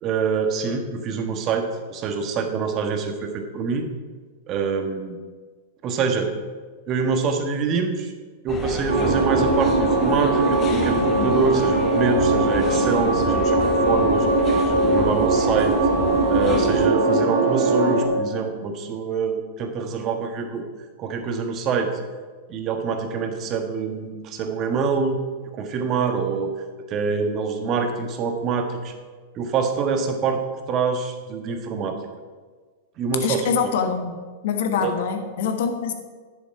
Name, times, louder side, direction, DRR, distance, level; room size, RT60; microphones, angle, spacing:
voice 1, 0.0-3.9 4.5-5.2 5.8-6.3 6.9-8.1 8.4-14.3 14.6-15.8 16.3-20.6 21.0-22.0 22.5-25.2 25.5-26.5 26.9-28.9 29.3-30.4 30.7-32.0 33.0-33.7 34.8-34.9, right 5 dB, 40° right, 5 dB, 1.5 m, -25 dB
sound 1, 8.5-16.9, left 4 dB, 30° left, 1.5 m, -31 dB
sound 2, 8.9-18.1, right 2 dB, 75° right, 1.9 m, -20 dB
voice 2, 33.2-34.2 34.4-35.9, left 6 dB, 65° left, 6 dB, 1.3 m, -24 dB
10.5 x 7.1 x 4.9 m, 1.4 s
hypercardioid pair, 105°, 0 cm